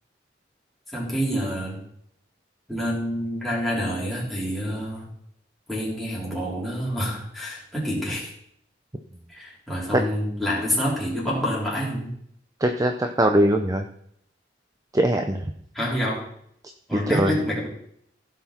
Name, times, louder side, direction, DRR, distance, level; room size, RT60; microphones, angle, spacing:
voice 1, 0.9-1.8 2.7-5.1 5.7-8.3 9.3-12.1 15.7-16.3 16.9-17.7, equal, ahead, -7 dB, 4.0 m, -27 dB
voice 2, 12.6-13.9 14.9-15.4 16.9-17.4, right 1 dB, 20° right, 6 dB, 0.6 m, -21 dB
15.5 x 6.0 x 4.4 m, 0.69 s
head